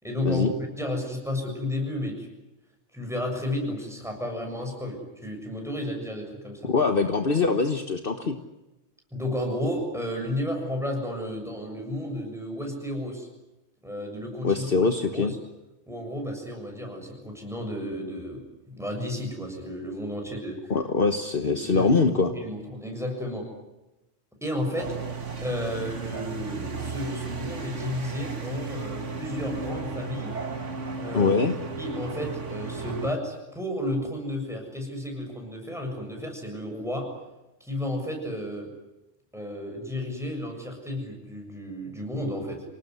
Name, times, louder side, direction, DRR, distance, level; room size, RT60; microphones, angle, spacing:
voice 1, 0.0-2.3 2.9-6.7 9.1-13.3 13.8-15.4 15.9-20.7 21.4-21.9 22.2-23.5 24.4-25.0 25.4-30.3 31.0-31.4 31.8-37.1 37.6-38.7 39.3-42.6, left 1 dB, ahead, 2 dB, 7.2 m, -32 dB
voice 2, 6.6-8.4 14.4-15.3 20.7-22.3 31.1-31.5, left 4 dB, 50° left, 7 dB, 1.5 m, -23 dB
sound 1, 24.8-33.1, right 4 dB, 75° right, 2.3 m, -34 dB
27.5 x 18.5 x 9.6 m, 1.0 s
omnidirectional pair, 1.3 m